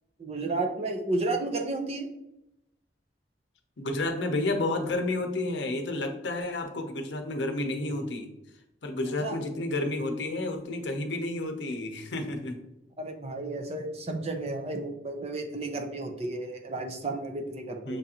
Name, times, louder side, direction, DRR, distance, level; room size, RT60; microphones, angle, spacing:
voice 1, 0.2-2.1 9.2-9.4 13.0-18.0, right 2 dB, 35° right, 4 dB, 0.5 m, -32 dB
voice 2, 3.8-8.3 8.8-12.6 17.8-18.0, left 2 dB, 80° left, 5 dB, 0.7 m, -31 dB
6.4 x 2.5 x 2.8 m, 0.86 s
head